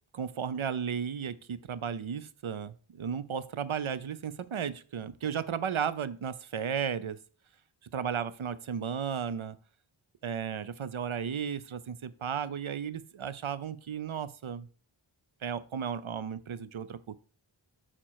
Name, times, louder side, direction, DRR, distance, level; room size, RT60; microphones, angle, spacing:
voice 1, 0.1-7.2 7.9-9.6 10.2-14.7 15.4-17.2, right 7 dB, 80° right, 15 dB, 0.7 m, -34 dB
8.8 x 4.5 x 4.6 m, 0.39 s
wide cardioid pair, 40°, 48 cm